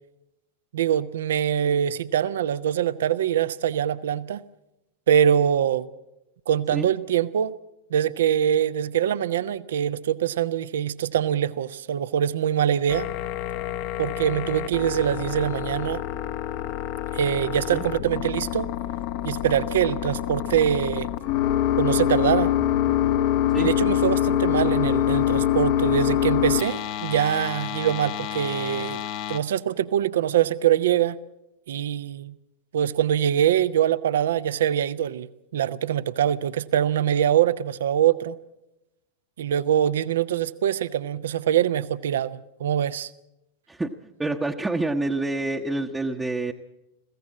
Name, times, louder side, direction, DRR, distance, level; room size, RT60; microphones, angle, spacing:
voice 1, 0.7-4.4 5.1-5.9 6.5-7.6 7.9-13.1 14.0-16.0 17.1-18.7 19.2-21.1 21.8-22.5 23.6-29.0 29.3-31.2 31.7-32.4 32.7-35.3 35.5-38.4 39.4-43.1, right 10 dB, 60° right, 16 dB, 0.7 m, -23 dB
sound 1, 12.9-29.4, left 11 dB, 45° left, 1.0 m, -26 dB
voice 2, 44.2-46.5, right 2 dB, 10° right, 1 dB, 0.9 m, -27 dB
22.0 x 16.0 x 7.5 m, 0.90 s
figure-of-eight pair, 90°, 0 cm